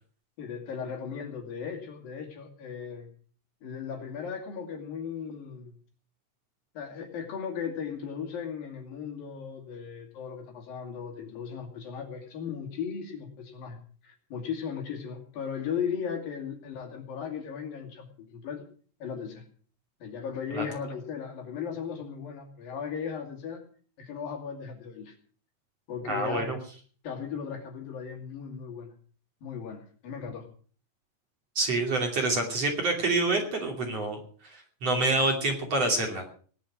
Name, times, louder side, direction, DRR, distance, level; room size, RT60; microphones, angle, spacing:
voice 1, 0.4-3.1 3.6-5.8 6.8-18.7 19.0-19.5 20.0-23.6 24.0-25.2 25.9-26.5 27.0-28.9 29.4-30.5, left 7 dB, 60° left, 3 dB, 4.0 m, -37 dB
voice 2, 26.1-26.6 31.6-34.2 34.5-36.3, right 2 dB, 40° right, 2 dB, 3.5 m, -27 dB
18.0 x 11.5 x 6.1 m, 0.43 s
omnidirectional pair, 4.8 m